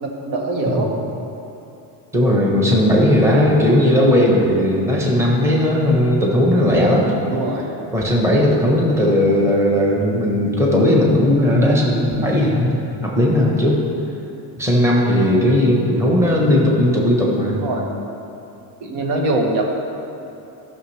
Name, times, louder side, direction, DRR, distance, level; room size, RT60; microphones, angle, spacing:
voice 1, 0.0-0.9 7.3-7.7 15.7-15.8 17.6-17.9 18.8-19.7, right 2 dB, 65° right, 0 dB, 1.4 m, -22 dB
voice 2, 2.1-7.1 7.9-13.8 14.6-17.6, left 1 dB, 5° right, -3 dB, 1.0 m, -16 dB
13.5 x 6.3 x 3.3 m, 2.8 s
cardioid pair, 145°, 48 cm